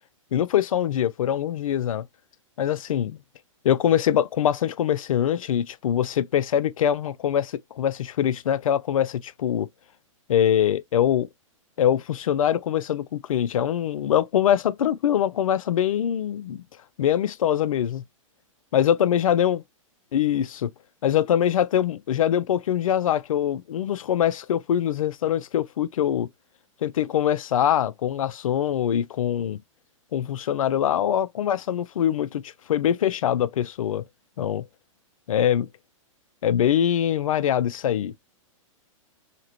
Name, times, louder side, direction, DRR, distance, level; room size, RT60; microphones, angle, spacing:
voice 1, 0.3-2.1 2.6-3.2 3.6-9.7 10.3-11.3 11.8-16.6 17.0-18.0 18.7-19.6 20.1-20.7 21.0-26.3 26.8-29.6 30.1-34.0 34.4-34.6 35.3-35.7 36.4-38.1, left 10 dB, 80° left, 0.4 m, -23 dB
2.9 x 2.8 x 2.9 m
hypercardioid pair, 130°, 17 cm